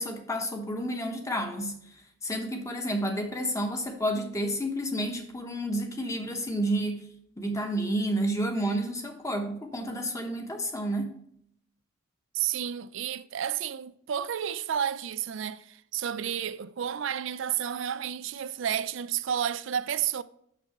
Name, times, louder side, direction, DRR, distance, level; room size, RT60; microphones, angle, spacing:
voice 1, 0.0-1.8 2.2-7.1 7.4-11.2, right 1 dB, 15° left, 0.9 m, -30 dB
voice 2, 12.3-20.2, right 9 dB, 65° right, 0.4 m, -31 dB
6.4 x 6.0 x 2.9 m
head